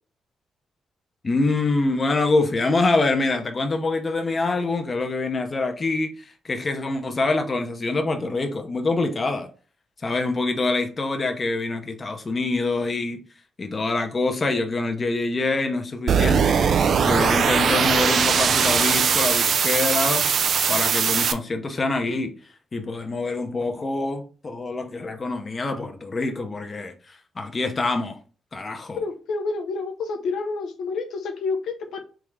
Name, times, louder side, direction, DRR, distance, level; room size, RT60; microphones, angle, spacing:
voice 1, 1.2-6.1 6.4-9.5 10.0-13.2 13.6-16.6 17.0-20.3 20.7-22.3 22.7-28.2 28.5-29.0, left 3 dB, 30° left, 0.7 m, -25 dB
sound 1, 16.1-21.3, right 6 dB, 60° right, 0.4 m, -20 dB
voice 2, 29.0-32.0, left 4 dB, 85° left, 0.7 m, -29 dB
3.7 x 3.6 x 3.2 m
cardioid pair, 120°, 0 cm